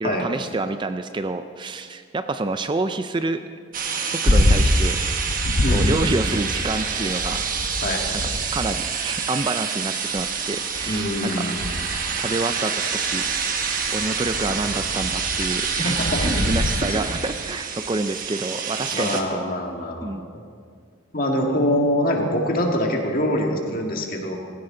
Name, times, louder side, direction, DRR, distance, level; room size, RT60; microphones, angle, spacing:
voice 1, 0.0-3.4 4.0-5.0 5.7-7.5 8.5-11.1 11.5-11.6 12.2-13.2 13.9-19.4 20.0-20.3, right 2 dB, 25° right, 9 dB, 0.4 m, -28 dB
sound 1, 3.7-19.2, right 6 dB, 45° right, 1.2 m, -27 dB
sound 2, 4.3-9.2 10.2-10.3 10.7-16.7, left 1 dB, 80° left, 1.2 m, -25 dB
voice 2, 5.6-6.3 7.8-8.0 10.8-11.6 15.8-16.4 16.9-17.0 18.9-20.4 21.1-24.4, left 1 dB, 45° left, 1 dB, 1.9 m, -24 dB
17.0 x 16.5 x 3.8 m, 2.1 s
head